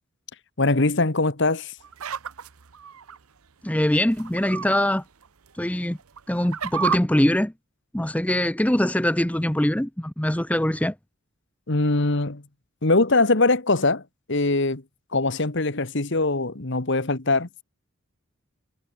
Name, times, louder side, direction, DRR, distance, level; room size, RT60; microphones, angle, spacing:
voice 1, 0.6-1.7 11.7-12.4 12.8-14.0 14.3-14.8 15.1-17.5, left 2 dB, 55° left, 1.6 m, -22 dB
sound 1, 1.8-3.2 4.1-4.8 5.2-5.3 6.0-7.0, right 7 dB, 85° right, 0.9 m, -30 dB
voice 2, 3.6-5.0 5.6-6.0 6.3-7.5 7.9-10.9, left 1 dB, 5° left, 0.7 m, -23 dB
head